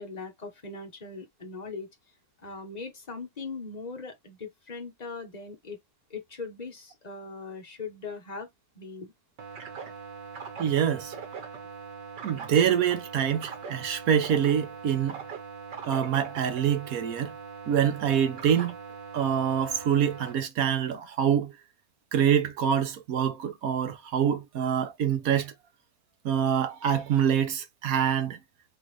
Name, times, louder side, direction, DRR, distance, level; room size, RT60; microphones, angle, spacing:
voice 1, 0.0-1.9 2.4-5.8 6.1-8.5 8.7-9.1, left 4 dB, 25° left, 1.1 m, -40 dB
sound 1, 9.4-20.3, right 6 dB, 80° right, 2.1 m, -41 dB
voice 2, 10.6-11.1 12.2-15.2 15.8-17.3 17.7-18.7 19.1-21.5 22.1-25.5 26.2-28.4, right 8 dB, 60° right, 1.1 m, -25 dB
3.8 x 3.8 x 3.1 m
omnidirectional pair, 1.8 m